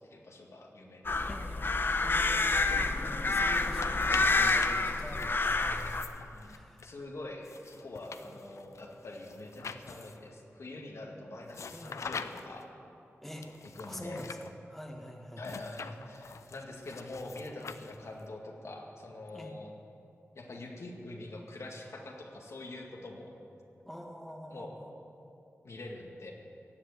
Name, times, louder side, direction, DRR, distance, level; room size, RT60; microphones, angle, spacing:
voice 1, 0.0-1.4 6.0-12.7 13.8-14.3 15.4-19.7 20.3-23.3 24.5-24.7 25.6-26.3, left 2 dB, 70° left, 0 dB, 2.0 m, -45 dB
sound 1, 1.0-6.0, left 3 dB, 45° left, 0.8 m, -28 dB
voice 2, 1.3-1.7 2.0-6.9 8.2-8.4 11.7-12.0 13.2-13.5 13.8-14.4 14.7-15.5 19.3-19.7 23.8-24.9, equal, 5° left, 1 dB, 1.8 m, -45 dB
sound 2, 3.4-6.9 7.4-10.3 11.5-12.7 13.4-14.5 15.4-18.2, left 5 dB, 85° left, 0.6 m, -45 dB
16.5 x 7.6 x 9.6 m, 2.7 s
wide cardioid pair, 75°, 5 cm